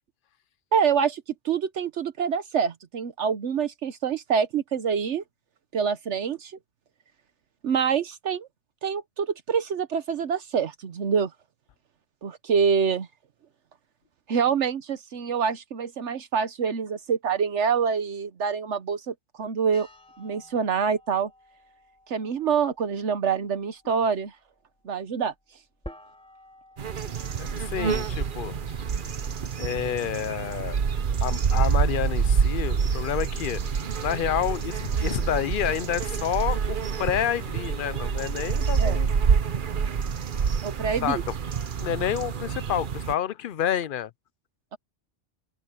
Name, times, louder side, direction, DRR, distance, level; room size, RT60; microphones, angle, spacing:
voice 1, 0.7-5.2 5.7-6.6 7.6-8.5 8.8-11.3 12.2-13.1 14.3-19.9 20.2-21.3 22.1-24.3 24.8-25.3 38.8-39.0 40.6-41.2, right 6 dB, 75° right, 1.2 m, -26 dB
sound 1, 19.7-28.6, equal, 5° left, 3.7 m, -51 dB
sound 2, 26.8-43.1, right 6 dB, 50° right, 1.0 m, -27 dB
voice 2, 27.4-28.5 29.6-30.8 31.2-33.6 34.0-39.1 41.0-41.2 41.8-44.1, left 10 dB, 60° left, 0.6 m, -29 dB
sound 3, 31.9-39.4, left 1 dB, 80° left, 8.1 m, -45 dB
open air
omnidirectional pair, 1.2 m